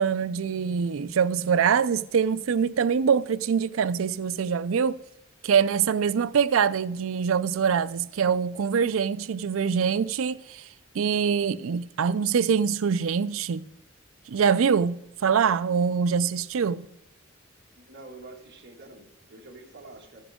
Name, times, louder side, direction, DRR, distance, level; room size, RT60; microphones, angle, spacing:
voice 1, 0.0-5.0 5.4-10.6 10.9-13.6 14.3-16.9, right 6 dB, 80° right, 0.4 m, -24 dB
voice 2, 17.7-20.3, right 2 dB, 55° right, 2.1 m, -47 dB
14.5 x 10.5 x 3.6 m
head